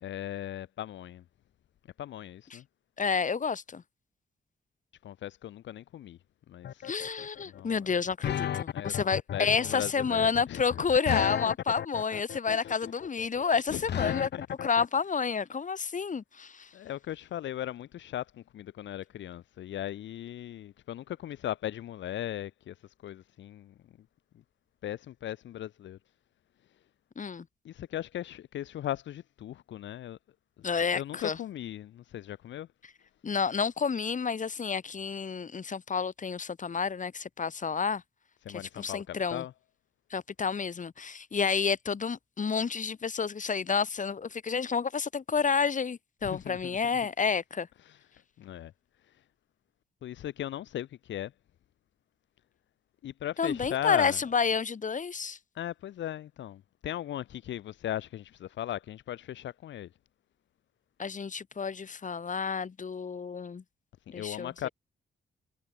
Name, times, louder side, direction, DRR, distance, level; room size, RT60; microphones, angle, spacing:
voice 1, 0.0-1.2 2.0-2.6 5.0-6.2 6.5-6.7 7.5-7.9 8.7-10.6 12.5-12.8 13.7-14.4 16.7-18.2 18.5-22.7 23.0-23.7 24.8-26.0 27.6-30.2 30.9-32.7 38.4-39.5 46.2-46.8 47.8-48.0 48.4-48.7 50.0-51.3 53.0-54.2 55.5-59.9 64.1-64.7, left 12 dB, 90° left, 1.8 m, -38 dB
voice 2, 3.0-3.8 6.8-14.3 14.6-16.7 27.2-27.4 30.6-31.4 33.2-38.0 38.8-39.4 40.1-47.7 53.4-55.4 61.0-63.6 64.1-64.7, left 5 dB, 45° left, 4.6 m, -30 dB
sound 1, 6.6-14.8, left 10 dB, 70° left, 1.4 m, -34 dB
cardioid pair, 95°, 18 cm